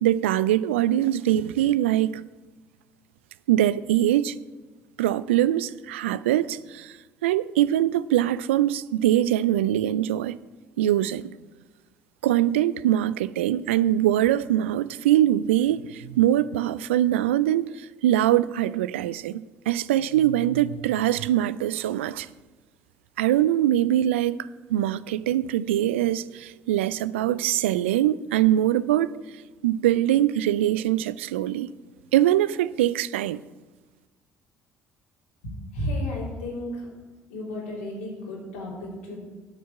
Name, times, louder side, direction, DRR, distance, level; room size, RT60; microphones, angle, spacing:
voice 1, 0.0-2.2 3.5-4.3 5.0-6.9 7.2-10.4 10.8-11.3 12.2-17.7 18.0-22.3 23.2-24.4 24.7-29.1 29.6-31.7 32.1-33.4, right 12 dB, 80° right, 0.3 m, -23 dB
voice 2, 35.4-36.8 37.3-39.2, left 1 dB, 80° left, 3.4 m, -32 dB
9.5 x 6.5 x 8.3 m
hypercardioid pair, 55°, 6 cm